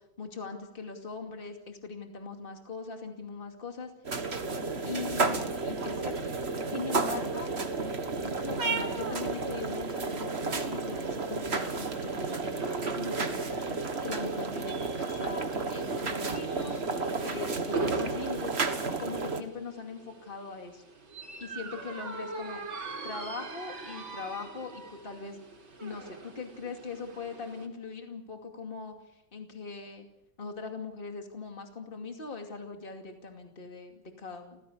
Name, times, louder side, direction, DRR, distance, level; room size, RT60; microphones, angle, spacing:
voice 1, 0.2-3.9 4.8-6.3 6.7-7.5 8.2-16.8 17.2-18.6 19.0-20.8 21.4-22.6 23.0-25.4 25.8-28.9 29.3-30.1 30.4-34.6, left 4 dB, 25° left, 4 dB, 2.6 m, -41 dB
sound 1, 4.0-19.4, right 3 dB, 35° right, 1.7 m, -32 dB
sound 2, 11.4-27.7, right 3 dB, 85° right, 4.4 m, -42 dB
29.5 x 16.0 x 6.7 m, 0.86 s
omnidirectional pair, 2.1 m